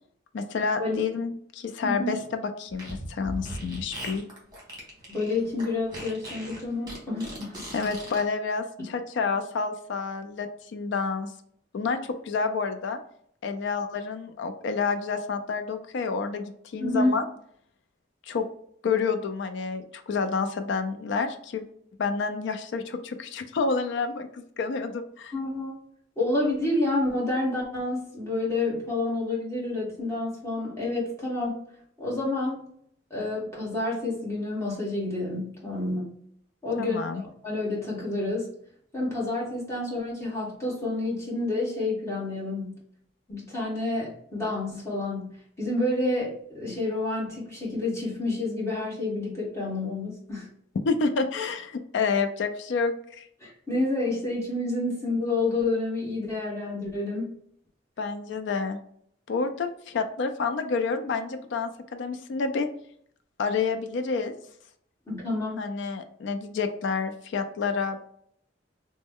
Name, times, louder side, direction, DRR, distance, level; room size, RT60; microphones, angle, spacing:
voice 1, 0.3-4.3 7.7-11.3 11.7-12.0 12.2-13.0 13.4-17.2 18.3-18.4 18.8-21.6 22.0-25.3 36.8-37.2 50.9-53.2 58.0-58.8 59.3-62.7 63.4-64.4 65.6-68.0, left 4 dB, 70° left, 7 dB, 0.4 m, -29 dB
voice 2, 1.8-2.2 5.1-7.7 16.8-17.2 25.3-25.8 26.2-31.6 32.0-32.6 33.1-36.1 36.6-37.0 37.4-38.5 38.9-42.8 43.3-50.5 53.4-57.3 65.1-65.6, left 2 dB, 15° left, -6 dB, 1.4 m, -29 dB
Fart, 2.7-8.2, right 1 dB, 20° right, 1.3 m, -39 dB
3.1 x 2.1 x 3.5 m, 0.66 s
head